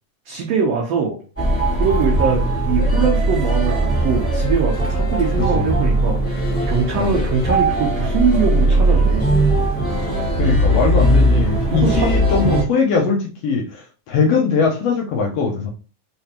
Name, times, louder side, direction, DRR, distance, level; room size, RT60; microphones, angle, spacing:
voice 1, 0.2-1.2 1.8-9.4 11.7-12.1, right 6 dB, 70° right, -1 dB, 1.7 m, -22 dB
sound 1, 1.4-12.6, right 1 dB, 5° left, 1.4 m, -18 dB
voice 2, 10.4-15.7, left 5 dB, 75° left, 1 dB, 1.6 m, -20 dB
5.0 x 3.5 x 2.8 m, 0.36 s
omnidirectional pair, 3.6 m